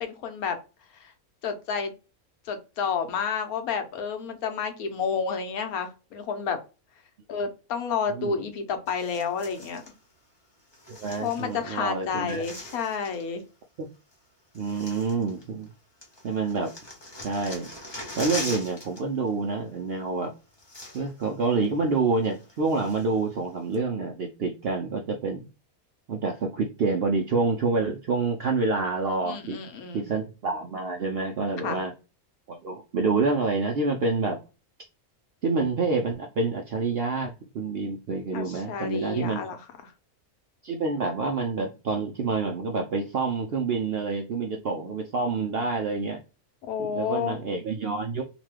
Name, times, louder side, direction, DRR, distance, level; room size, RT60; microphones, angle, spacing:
voice 1, 0.0-0.6 0.9-1.1 1.4-1.9 2.4-6.6 7.3-9.8 11.2-13.4 29.2-30.1 31.6-31.8 38.3-39.9 46.7-47.4, left 6 dB, 80° left, 6 dB, 1.2 m, -30 dB
sound 1, 8.9-9.9 10.7-11.8 12.0-13.3 14.1-14.2 14.5-15.7 16.0-19.0 19.3-19.5 20.2-20.3 20.5-21.3 21.6-21.7 22.2-23.2 23.7-23.8, left 2 dB, 20° left, 0.7 m, -41 dB
voice 2, 11.0-12.4 13.8-13.9 14.5-15.7 16.2-16.7 17.2-17.7 18.2-20.3 20.9-25.5 26.1-29.6 29.9-31.9 32.5-34.4 35.4-39.5 40.6-46.2 46.9-48.2, right 4 dB, 70° right, 2 dB, 0.6 m, -27 dB
2.9 x 2.2 x 3.2 m, 0.31 s
omnidirectional pair, 1.5 m